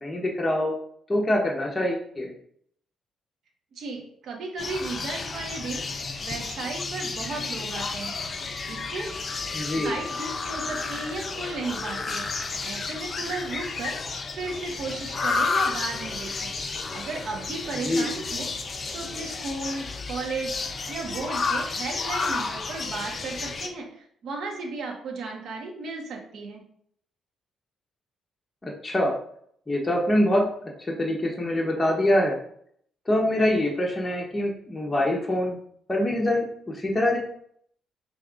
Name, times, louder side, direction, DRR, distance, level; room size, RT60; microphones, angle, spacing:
voice 1, 0.0-0.7 1.1-2.3 9.5-9.9 17.7-18.0 28.6-29.1 29.7-30.5 30.9-32.4 33.1-35.6 35.9-37.2, left 1 dB, 15° left, -2 dB, 0.9 m, -24 dB
voice 2, 3.7-5.8 6.2-8.2 8.7-9.1 9.8-12.3 12.6-13.9 14.3-16.5 16.9-18.5 18.9-20.6 20.9-26.6, right 3 dB, 65° right, 1 dB, 1.2 m, -34 dB
sound 1, 4.6-23.7, left 4 dB, 40° left, 0.5 m, -31 dB
5.4 x 3.4 x 2.5 m, 0.65 s
cardioid pair, 90°, 0 cm